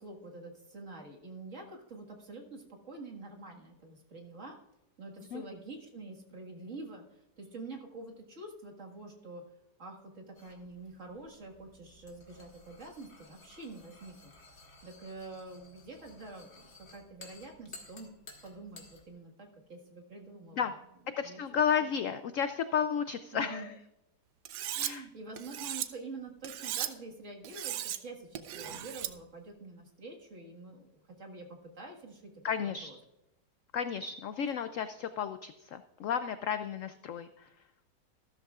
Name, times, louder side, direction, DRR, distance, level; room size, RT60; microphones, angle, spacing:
voice 1, 0.0-4.6 5.0-9.4 9.8-18.1 18.4-20.6 21.2-21.4 23.3-23.7 24.7-32.3 32.8-33.0, right 2 dB, 45° right, 0 dB, 2.0 m, -47 dB
sound 1, 10.4-19.1, left 3 dB, 40° left, 2.0 m, -55 dB
voice 2, 21.2-23.8 24.8-25.1 32.4-32.9 33.7-37.5, left 7 dB, 80° left, 11 dB, 0.7 m, -33 dB
Cutlery silverware, 24.5-24.9 25.4-25.9 26.4-26.9 27.4-28.0 28.4-29.1, right 12 dB, 75° right, 1.2 m, -36 dB
14.0 x 13.0 x 2.4 m, 0.94 s
omnidirectional pair, 1.9 m